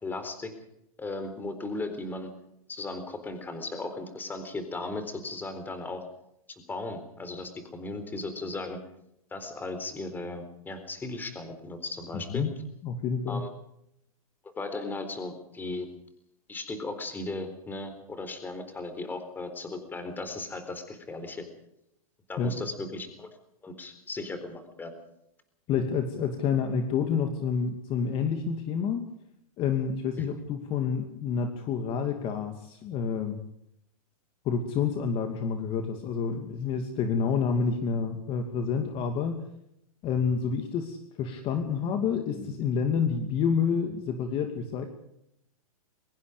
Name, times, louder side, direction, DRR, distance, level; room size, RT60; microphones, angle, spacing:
voice 1, 0.0-0.5 1.0-2.3 2.7-6.0 6.5-8.8 9.3-12.4 13.3-13.5 14.6-15.9 16.5-21.5 22.3-23.3 23.6-24.9 30.2-30.3, left 2 dB, 10° left, 9 dB, 4.0 m, -36 dB
voice 2, 12.1-12.5 12.8-13.4 22.4-22.5 25.7-29.0 29.6-33.4 34.4-39.4 40.0-44.9, left 6 dB, 30° left, 6 dB, 2.6 m, -28 dB
23.5 x 21.5 x 5.2 m, 0.78 s
hypercardioid pair, 145°, 19 cm